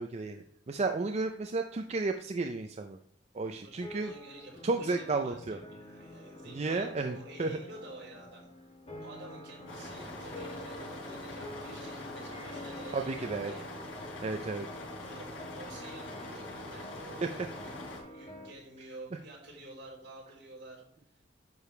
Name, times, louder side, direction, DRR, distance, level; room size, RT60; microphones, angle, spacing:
voice 1, 0.0-3.0 3.3-4.1 4.6-5.6 6.5-7.6 12.9-13.5 14.2-14.7 17.2-17.3, right 3 dB, 35° right, 5 dB, 0.5 m, -33 dB
voice 2, 3.6-8.7 9.0-13.7 14.4-20.8, right 2 dB, 65° right, -3 dB, 3.9 m, -50 dB
sound 1, 3.7-18.5, left 1 dB, 35° left, 1.6 m, -48 dB
sound 2, 9.7-18.0, left 1 dB, 85° left, 3.6 m, -43 dB
9.4 x 6.8 x 3.2 m, 0.68 s
head